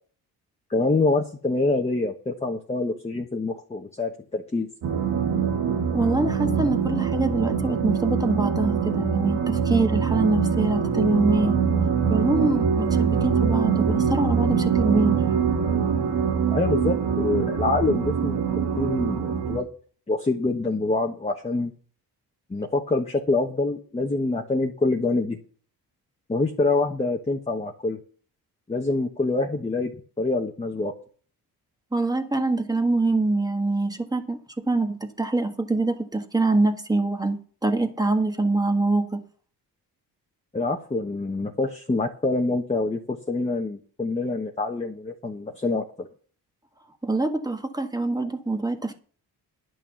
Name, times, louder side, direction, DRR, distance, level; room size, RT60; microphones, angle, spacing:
voice 1, 0.7-4.7 16.5-19.7 20.1-21.7 22.5-25.4 26.3-28.0 28.7-29.9 30.2-30.9 40.5-46.1, left 3 dB, 15° left, 1.3 m, -26 dB
sound 1, 4.8-19.6, right 7 dB, 90° right, 2.2 m, -24 dB
voice 2, 5.9-11.6 12.1-15.2 31.9-34.4 34.7-39.2 47.0-49.0, right 2 dB, 10° right, 1.5 m, -24 dB
11.0 x 6.2 x 7.0 m
cardioid pair, 120°, 39 cm